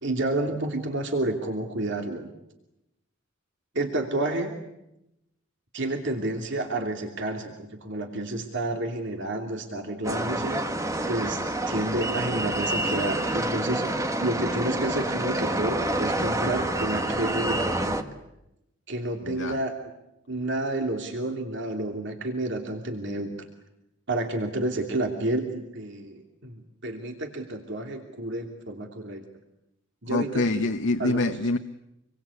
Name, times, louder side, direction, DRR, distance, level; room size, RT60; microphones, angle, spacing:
voice 1, 0.0-2.3 3.7-4.6 5.7-10.6 11.1-18.0 18.9-19.7 20.3-23.3 24.1-29.2 30.0-30.7 31.0-31.3, right 2 dB, 60° right, 3 dB, 2.9 m, -30 dB
sound 1, 10.0-18.0, right 1 dB, 15° right, 1.5 m, -28 dB
voice 2, 19.2-19.6 30.1-31.6, left 2 dB, 65° left, 6 dB, 1.0 m, -26 dB
27.5 x 23.0 x 8.5 m, 0.88 s
head